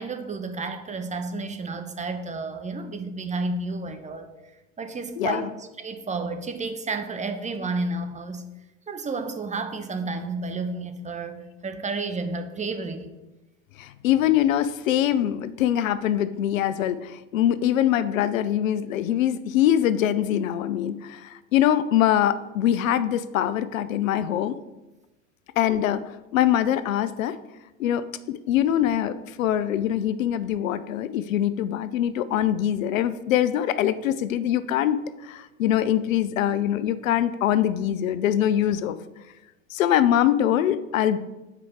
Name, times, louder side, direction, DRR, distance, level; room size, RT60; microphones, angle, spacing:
voice 1, 0.0-4.3 4.8-8.4 8.9-13.1, right 3 dB, 20° right, 7 dB, 0.9 m, -31 dB
voice 2, 5.2-5.5 13.8-24.5 25.6-26.0 26.3-27.4 27.8-39.0 39.7-41.2, left 11 dB, 85° left, 14 dB, 0.5 m, -23 dB
8.7 x 4.7 x 4.8 m, 1.1 s
hypercardioid pair, 85°, 39 cm